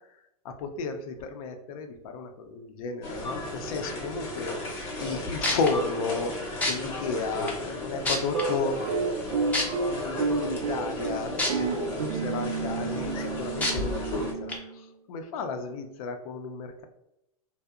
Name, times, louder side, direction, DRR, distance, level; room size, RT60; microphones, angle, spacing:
voice 1, 0.4-6.3 6.6-8.9 9.8-16.8, left 4 dB, 70° left, 7 dB, 0.5 m, -33 dB
sound 1, 3.0-14.3, left 1 dB, 30° left, 0.9 m, -35 dB
sound 2, 5.1-5.2 5.4-5.7 6.6-6.7 7.5-7.6 8.0-8.4 9.5-9.6 11.4-11.5 12.0-12.1 13.6-13.7 14.5-14.6, left 1 dB, 10° left, 0.4 m, -26 dB
sound 3, 8.3-14.9, right 4 dB, 85° right, 0.5 m, -31 dB
2.7 x 2.0 x 2.3 m, 0.84 s
hypercardioid pair, 130°, 19 cm